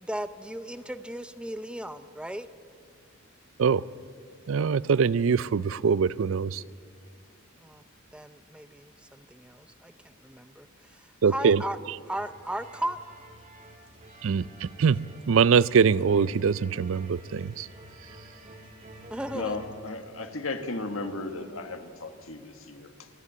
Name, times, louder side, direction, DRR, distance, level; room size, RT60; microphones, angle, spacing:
voice 1, 0.0-2.5 7.6-7.8 8.1-11.8 12.1-13.0 19.1-19.6, right 1 dB, 5° right, 11 dB, 0.5 m, -36 dB
voice 2, 4.5-6.6 11.2-11.6 14.2-17.7, right 6 dB, 65° right, 19 dB, 0.4 m, -23 dB
sound 1, 12.1-19.7, right 1 dB, 40° right, 2.3 m, -49 dB
voice 3, 19.3-23.1, left 2 dB, 75° left, 7 dB, 1.6 m, -35 dB
28.0 x 11.0 x 8.8 m, 2.1 s
head